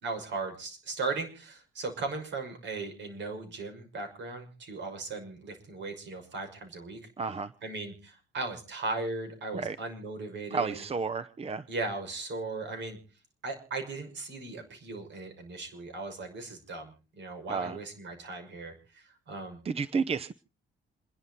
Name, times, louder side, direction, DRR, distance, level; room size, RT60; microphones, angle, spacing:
voice 1, 0.0-7.0 7.6-10.8 11.7-13.0 13.4-19.6, right 3 dB, 65° right, 6 dB, 5.9 m, -37 dB
voice 2, 7.2-7.5 9.5-9.8 10.5-11.6 17.5-17.8 19.6-20.3, right 5 dB, 30° right, 16 dB, 0.7 m, -31 dB
27.5 x 11.0 x 4.0 m, 0.35 s
cardioid pair, 90°, 20 cm